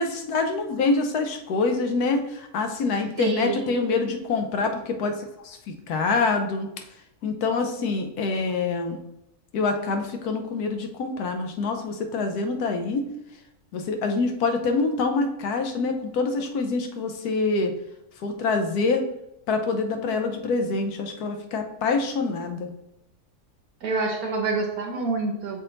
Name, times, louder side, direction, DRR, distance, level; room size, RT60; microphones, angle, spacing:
voice 1, 0.0-5.1 5.4-6.7 7.2-9.0 9.5-13.1 13.7-17.7 18.2-19.0 19.5-22.7, left 3 dB, 80° left, 5 dB, 1.3 m, -25 dB
voice 2, 3.2-3.7 23.8-25.6, right 3 dB, 75° right, 1 dB, 1.2 m, -27 dB
6.6 x 3.7 x 3.9 m, 0.82 s
omnidirectional pair, 1.6 m